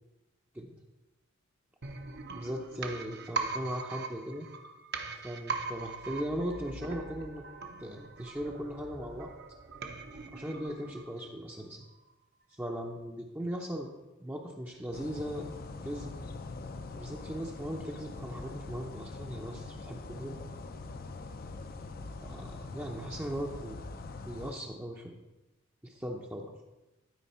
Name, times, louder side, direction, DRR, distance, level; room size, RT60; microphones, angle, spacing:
sound 1, 1.8-11.5 11.8-11.9, right 4 dB, 55° right, 0.9 m, -41 dB
voice 1, 2.3-4.5 5.2-7.4 7.8-9.3 10.3-11.8 12.5-13.9 14.2-15.5 15.8-16.1 16.9-20.4 22.2-23.8 24.3-25.2 25.8-26.5, equal, 10° right, -1 dB, 0.6 m, -38 dB
sound 2, 14.9-24.5, left 3 dB, 45° left, 0.5 m, -43 dB
12.5 x 4.8 x 4.3 m, 1.0 s
head